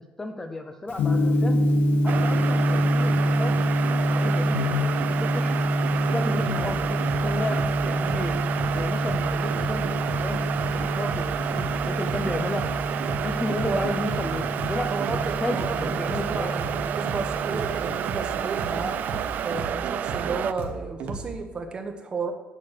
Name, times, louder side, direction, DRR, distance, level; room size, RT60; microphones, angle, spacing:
voice 1, 0.2-1.7 2.0-5.5 5.9-8.4 8.7-12.7 13.2-16.5, left 2 dB, 15° left, 5 dB, 0.6 m, -33 dB
Gong, 0.9-19.6, equal, 90° left, 0.8 m, -26 dB
sound 1, 2.1-20.5, right 9 dB, 60° right, 0.4 m, -30 dB
sound 2, 2.1-21.3, right 3 dB, 80° right, 1.2 m, -36 dB
voice 2, 14.9-19.0 19.4-22.3, right 4 dB, 30° right, 5 dB, 1.1 m, -33 dB
8.4 x 7.5 x 6.5 m, 1.1 s
cardioid pair, 180°, 3 cm